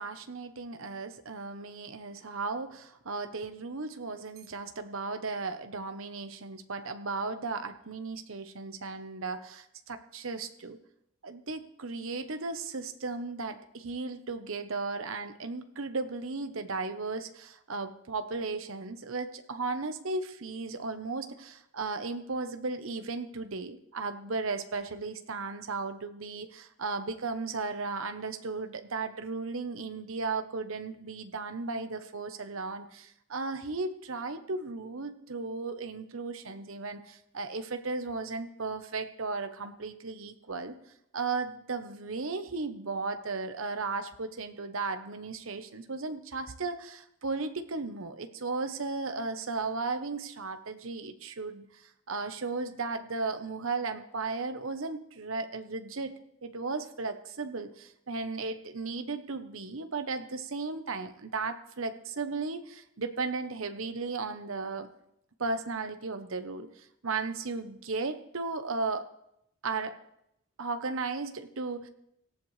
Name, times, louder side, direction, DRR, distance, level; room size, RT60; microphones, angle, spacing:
voice 1, 0.0-10.8 11.2-40.7 41.1-51.6 52.1-56.1 56.4-64.9 65.4-66.7 67.0-69.1 69.6-69.9 70.6-71.9, right 3 dB, 65° right, 8 dB, 0.9 m, -35 dB
18.0 x 13.5 x 3.3 m, 0.78 s
head